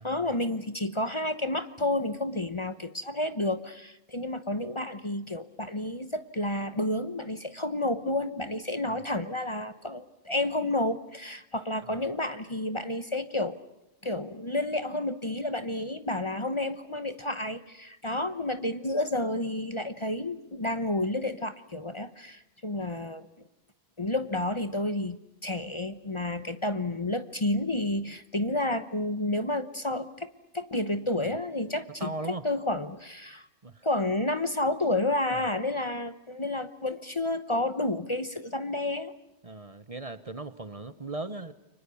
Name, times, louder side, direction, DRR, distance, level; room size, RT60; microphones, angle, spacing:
voice 1, 0.0-13.6 14.0-23.3 24.0-30.3 30.5-32.1 32.4-33.5 33.8-39.1, left 1 dB, 30° left, 11 dB, 1.0 m, -30 dB
voice 2, 32.0-32.4 33.3-33.8 35.3-35.4 39.4-41.5, right 2 dB, 35° right, 13 dB, 1.0 m, -39 dB
29.5 x 24.5 x 7.0 m, 0.91 s
omnidirectional pair, 1.1 m